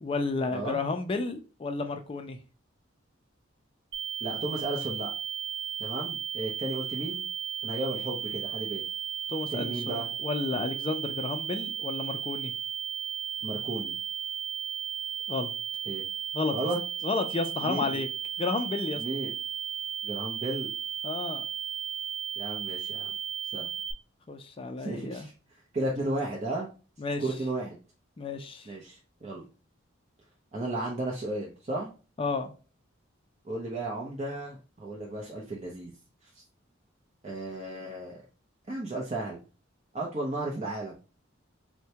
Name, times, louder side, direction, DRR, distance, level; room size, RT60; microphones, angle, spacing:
voice 1, 0.0-2.4 9.3-12.5 15.3-15.5 16.3-16.5 17.0-18.1 18.4-19.0 21.0-21.4 24.3-25.3 27.0-27.2 28.2-28.7 32.2-32.5, left 3 dB, 25° left, 0.3 m, -32 dB
sound 1, 3.9-23.9, right 8 dB, 85° right, 0.6 m, -35 dB
voice 2, 4.2-5.1 5.8-7.3 7.6-8.8 9.5-10.1 13.4-13.9 15.9-16.0 16.5-16.8 17.6-18.0 19.0-19.3 20.0-20.7 22.4-23.1 23.5-23.7 24.8-25.3 25.7-26.7 27.2-27.7 28.7-29.5 30.5-31.9 33.4-35.9 37.2-38.2 38.7-39.4 39.9-40.9, right 2 dB, 35° right, 0.6 m, -34 dB
4.4 x 2.1 x 2.8 m
head